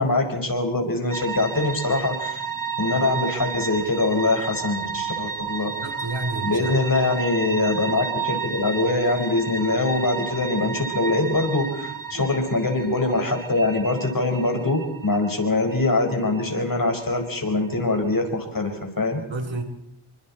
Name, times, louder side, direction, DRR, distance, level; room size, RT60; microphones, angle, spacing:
voice 1, 0.0-2.5 2.8-5.7 6.4-19.2, left 2 dB, 45° left, 4 dB, 5.0 m, -23 dB
sound 1, 1.1-18.1, right 6 dB, 40° right, 2.1 m, -32 dB
voice 2, 5.8-6.8 12.1-12.3 19.3-19.6, right 2 dB, 70° right, 7 dB, 3.3 m, -30 dB
27.5 x 25.0 x 4.3 m, 0.74 s
wide cardioid pair, 70°, 47 cm